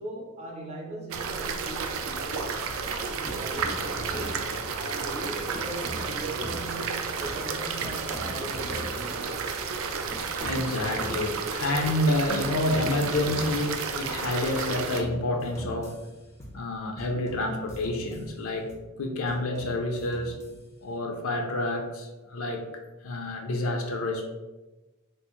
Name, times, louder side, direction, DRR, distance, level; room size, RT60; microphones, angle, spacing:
voice 1, 0.0-9.5, right 1 dB, 30° right, -1 dB, 0.6 m, -40 dB
sound 1, 1.1-15.0, right 5 dB, 65° right, 0.4 m, -32 dB
sound 2, 2.7-3.0 3.3-5.2 5.5-7.6 7.8-9.8 10.1-12.1 12.4-14.3 14.7-16.7 17.0-18.9 19.3-20.9, equal, 15° left, 0.4 m, -42 dB
voice 2, 9.8-16.0 16.5-20.4 20.8-22.7 23.0-24.3, left 1 dB, 70° left, 3 dB, 0.5 m, -29 dB
3.4 x 2.4 x 3.0 m, 1.1 s
head